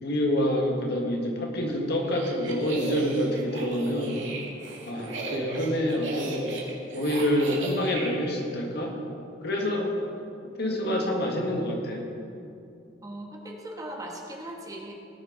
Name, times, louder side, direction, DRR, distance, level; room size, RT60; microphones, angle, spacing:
voice 1, 0.0-4.2 4.9-6.5 6.9-8.9 9.4-9.9 10.6-12.0, equal, 60° left, 0 dB, 1.8 m, -27 dB
sound 1, 1.9-8.1, right 2 dB, 70° right, 2.2 m, -36 dB
voice 2, 13.0-14.9, right 1 dB, 20° right, 0 dB, 1.3 m, -39 dB
18.5 x 6.7 x 4.9 m, 2.6 s
head